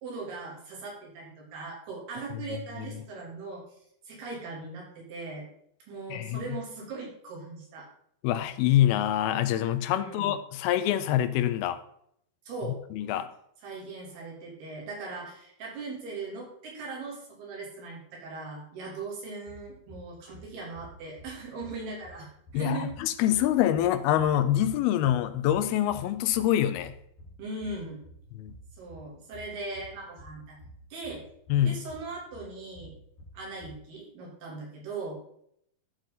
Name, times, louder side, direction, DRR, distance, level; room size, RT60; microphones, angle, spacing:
voice 1, 0.0-3.6 4.0-5.5 5.9-7.9 10.0-10.3 12.5-12.8 13.6-22.9 27.4-28.0 28.7-30.6 30.9-31.2 31.6-32.9 33.3-35.2, right 3 dB, 80° right, -3 dB, 4.8 m, -39 dB
voice 2, 8.2-11.8 12.9-13.3 22.5-26.9 28.4-28.5 31.5-31.8, left 12 dB, 85° left, 11 dB, 2.5 m, -25 dB
sound 1, 19.5-33.7, right 1 dB, 65° left, 2.7 m, -51 dB
13.0 x 6.1 x 3.9 m, 0.70 s
omnidirectional pair, 4.4 m